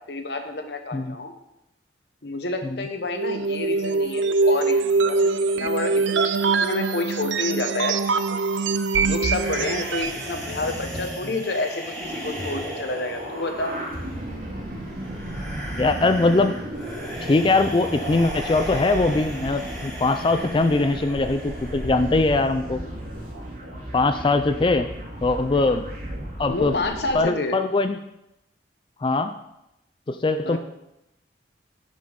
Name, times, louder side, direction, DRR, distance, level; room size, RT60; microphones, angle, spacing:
voice 1, 0.1-1.3 2.2-8.4 9.0-13.7 26.5-27.6 30.4-30.6, left 2 dB, 65° left, 6 dB, 1.1 m, -29 dB
sound 1, 3.2-10.3, right 4 dB, 80° right, 0.5 m, -23 dB
sound 2, 9.3-22.3, equal, 5° left, 2.4 m, -37 dB
sound 3, 11.9-27.2, equal, 50° right, 3.0 m, -34 dB
voice 2, 15.8-16.5 17.2-22.8 23.9-24.9 25.2-25.9 26.4-26.7 27.1-28.0 29.0-29.3 30.1-30.6, left 3 dB, 25° left, 9 dB, 0.3 m, -21 dB
10.5 x 5.4 x 5.2 m, 0.86 s
head